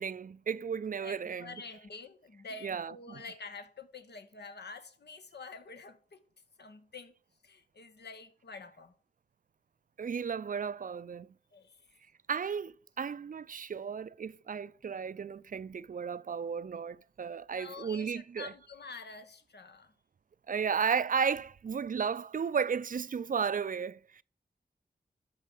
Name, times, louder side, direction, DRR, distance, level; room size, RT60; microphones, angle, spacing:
voice 1, 0.0-1.5 2.6-3.2 10.0-11.3 12.3-18.5 20.5-24.2, right 6 dB, 55° right, 0.4 m, -34 dB
voice 2, 1.0-6.2 6.6-7.1 7.4-9.0 11.5-11.9 17.5-19.9, left 4 dB, 80° left, 1.1 m, -47 dB
12.5 x 4.6 x 5.5 m
cardioid pair, 50°, 17 cm